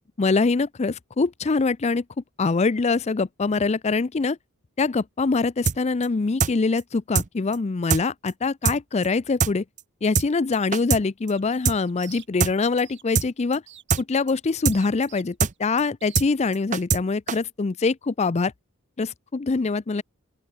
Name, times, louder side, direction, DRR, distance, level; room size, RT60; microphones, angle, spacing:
voice 1, 0.2-2.0 2.4-4.4 4.8-9.6 10.0-13.6 14.0-18.5 19.0-20.0, left 4 dB, 30° left, 0.4 m, -24 dB
sound 1, 5.7-5.8 6.0-6.1 6.4-6.5 6.8-6.9 7.1-7.3 7.5-7.6 7.9-8.0 8.3-8.4 8.6-8.8 9.0-9.1 9.4-9.5 9.8-9.9 10.1-10.3 10.5-11.0 11.3-11.4 11.6-11.8 12.0-12.1 12.4-12.5 12.8-12.9 13.1-13.3 13.5-13.6 13.9-14.0 14.3-14.4 14.6-14.8 15.0-15.1 15.4-15.5 15.8-15.9 16.1-16.3 16.5-17.0 17.3-17.4, right 6 dB, 35° right, 0.6 m, -22 dB
sound 2, 11.3-12.6 12.8-13.1 13.7-14.3 14.7-15.6 16.0-16.2, right 12 dB, 55° right, 6.8 m, -48 dB
open air
head